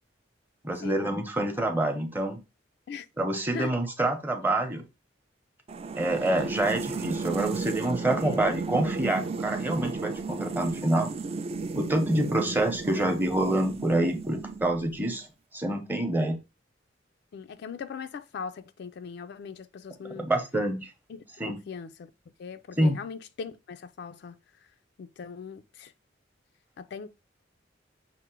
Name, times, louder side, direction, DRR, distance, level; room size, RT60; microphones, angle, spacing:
voice 1, 0.6-2.4 3.2-4.8 6.0-11.1 11.8-15.3 15.5-16.4 20.2-20.9 21.4-21.6 22.8-23.0, right 1 dB, 10° right, 0.7 m, -27 dB
sound 1, 5.7-15.0, right 4 dB, 30° right, 0.3 m, -34 dB
voice 2, 17.3-20.3 21.1-22.1 22.4-24.4 25.0-25.9 26.8-27.1, left 5 dB, 60° left, 0.3 m, -40 dB
5.8 x 2.1 x 4.4 m
head